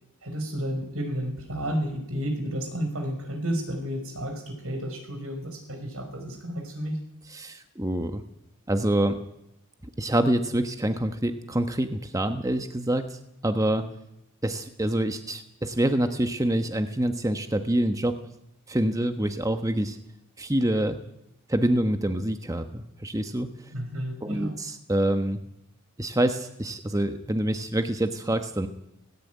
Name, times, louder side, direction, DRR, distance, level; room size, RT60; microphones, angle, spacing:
voice 1, 0.2-7.0 23.7-24.6, equal, 75° right, 6 dB, 5.3 m, -31 dB
voice 2, 7.3-8.2 8.7-9.2 10.0-13.9 14.4-18.2 18.7-20.0 20.4-21.0 21.5-23.5 24.2-25.4 26.0-28.7, right 1 dB, 15° right, 8 dB, 1.1 m, -26 dB
18.0 x 17.0 x 9.3 m, 0.80 s
head